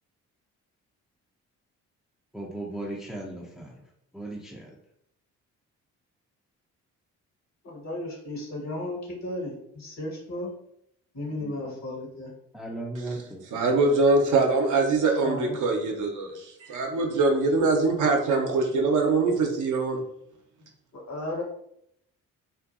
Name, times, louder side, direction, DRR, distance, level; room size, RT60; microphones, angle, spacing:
voice 1, 2.3-3.8 4.1-4.7 11.4-11.6 12.5-13.4, right 2 dB, ahead, -4 dB, 0.5 m, -36 dB
voice 2, 7.6-10.5 11.1-12.3 15.2-15.6 20.9-21.4, left 1 dB, 45° left, 0 dB, 1.0 m, -34 dB
voice 3, 13.5-20.0, right 3 dB, 55° right, 1 dB, 0.7 m, -23 dB
2.5 x 2.5 x 2.4 m, 0.73 s
hypercardioid pair, 45°, 38 cm